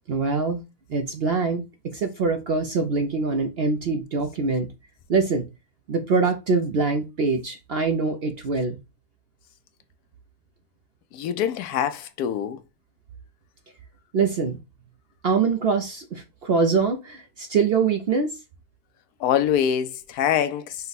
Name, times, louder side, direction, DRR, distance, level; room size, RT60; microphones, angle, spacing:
voice 1, 0.1-0.6 0.9-4.7 5.1-5.5 5.9-8.8 14.1-14.6 15.2-18.3, right 4 dB, 60° right, 0.6 m, -24 dB
voice 2, 11.1-12.6 19.2-20.8, left 9 dB, 75° left, 1.1 m, -24 dB
5.3 x 2.2 x 3.9 m
omnidirectional pair, 1.7 m